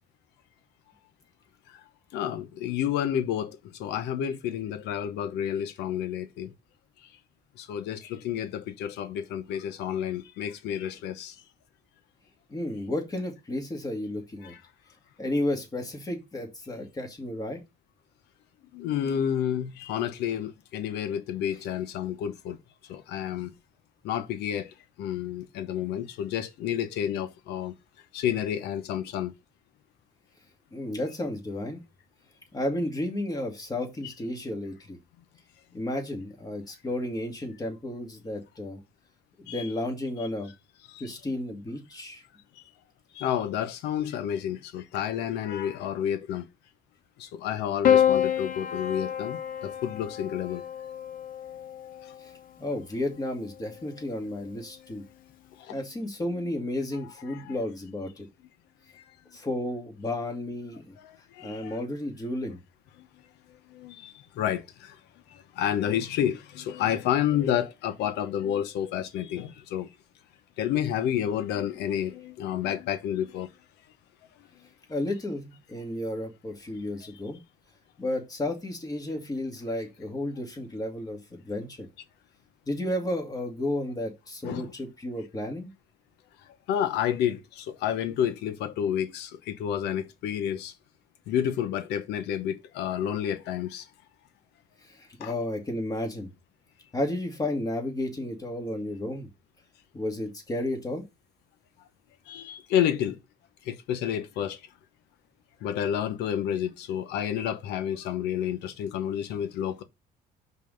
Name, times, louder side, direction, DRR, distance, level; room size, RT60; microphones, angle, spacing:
voice 1, 2.1-6.5 7.6-11.3 14.4-14.6 18.7-22.6 22.9-23.5 24.0-24.7 25.0-27.7 28.1-29.3 39.5-39.6 40.9-41.1 43.1-46.5 47.2-50.6 55.6-55.7 57.3-57.5 61.0-61.8 63.0-63.1 63.7-64.9 65.3-69.9 70.6-73.5 84.4-84.7 86.7-90.7 91.3-93.8 95.2-95.3 102.3-103.2 103.7-104.6 105.6-109.8, left 10 dB, 85° left, 1.0 m, -30 dB
voice 2, 12.5-14.5 15.2-17.6 30.7-31.8 32.5-35.0 35.7-38.8 39.4-40.5 41.0-42.2 52.2-52.3 52.6-55.0 55.7-58.3 59.3-60.9 61.4-62.6 74.9-77.4 78.0-81.9 82.7-85.7 95.0-96.3 96.9-99.3 99.9-101.0, left 1 dB, 20° left, 2.2 m, -32 dB
Piano, 47.8-52.3 53.5-54.2, left 9 dB, 55° left, 0.9 m, -27 dB
5.4 x 4.1 x 5.2 m
cardioid pair, 110°, 17 cm